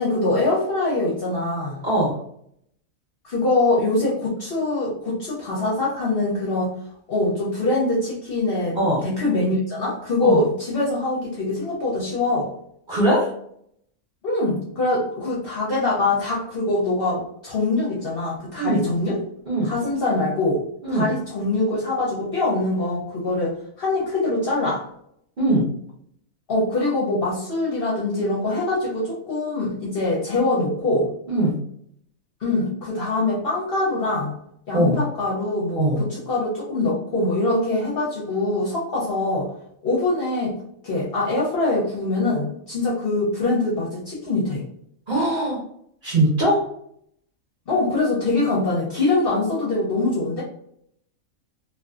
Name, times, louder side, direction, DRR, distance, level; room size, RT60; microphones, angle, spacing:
voice 1, 0.0-1.8 3.2-6.7 7.1-8.8 9.0-12.5 14.2-19.2 19.6-20.6 20.9-24.8 26.5-31.1 32.4-34.3 34.7-39.5 39.8-40.6 40.8-44.6 47.7-50.4, left 2 dB, 55° left, -5 dB, 0.7 m, -23 dB
voice 2, 12.9-13.3 18.6-18.8 19.5-19.7 20.8-21.1 25.4-25.6 31.3-31.6 34.7-35.0 35.7-36.0 45.1-45.6 46.0-46.6, right 1 dB, 45° right, -6 dB, 0.8 m, -20 dB
2.5 x 2.3 x 2.3 m, 0.69 s
omnidirectional pair, 1.5 m